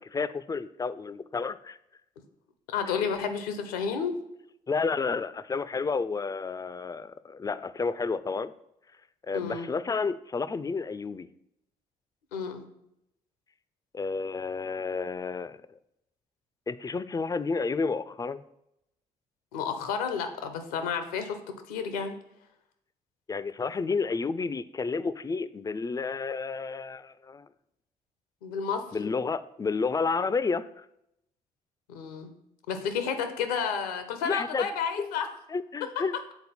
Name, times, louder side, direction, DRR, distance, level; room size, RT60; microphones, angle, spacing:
voice 1, 0.0-1.8 4.7-8.5 9.2-11.3 13.9-15.8 16.7-18.4 23.3-27.5 28.9-30.9 34.2-34.7 35.0-35.1 35.5-36.2, left 4 dB, 20° left, 15 dB, 0.3 m, -31 dB
voice 2, 2.7-4.2 9.3-9.7 12.3-12.7 19.5-22.1 28.4-28.8 31.9-32.3 32.7-35.3 35.8-35.9, left 6 dB, 80° left, 8 dB, 0.6 m, -31 dB
6.9 x 3.9 x 4.2 m, 0.82 s
hypercardioid pair, 45°, 19 cm